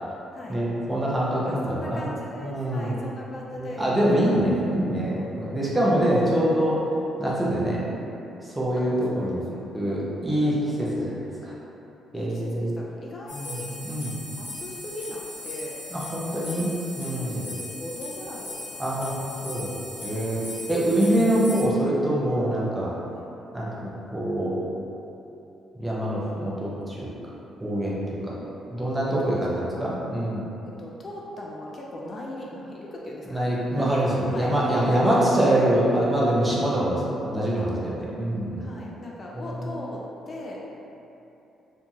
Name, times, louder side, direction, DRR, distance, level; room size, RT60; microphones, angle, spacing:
voice 1, 0.5-2.1 2.4-3.0 3.5-6.8 7.2-7.8 8.4-9.4 9.7-11.1 11.4-11.5 12.1-12.7 13.3-13.6 13.8-14.1 15.9-16.7 17.0-17.5 18.8-19.7 20.0-20.4 20.7-22.9 23.5-24.6 25.8-27.1 27.6-28.4 28.7-30.5 33.3-38.7 39.3-39.7, right 1 dB, 15° right, -6 dB, 0.6 m, -25 dB
voice 2, 1.5-3.9 4.2-4.4 5.2-5.7 9.1-10.5 12.1-13.7 14.4-15.8 17.1-19.0 20.3-20.6 23.1-23.3 26.5-26.7 28.3-28.5 29.2-29.4 30.6-35.0 38.6-40.6, left 1 dB, 40° left, -3 dB, 0.3 m, -39 dB
sound 1, 13.3-21.6, left 2 dB, 70° left, 0.7 m, -38 dB
2.8 x 2.7 x 2.4 m, 2.9 s
cardioid pair, 90°, 0 cm